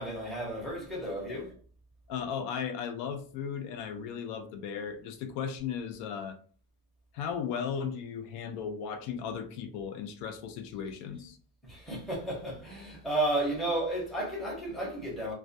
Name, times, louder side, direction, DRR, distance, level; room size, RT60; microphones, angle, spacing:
voice 1, 0.0-1.5 11.6-15.3, right 1 dB, ahead, 0.6 m, -33 dB
voice 2, 2.1-6.4 7.1-11.4, left 7 dB, 80° left, 0.6 m, -36 dB
2.3 x 2.2 x 2.6 m
cardioid pair, 175°, 41 cm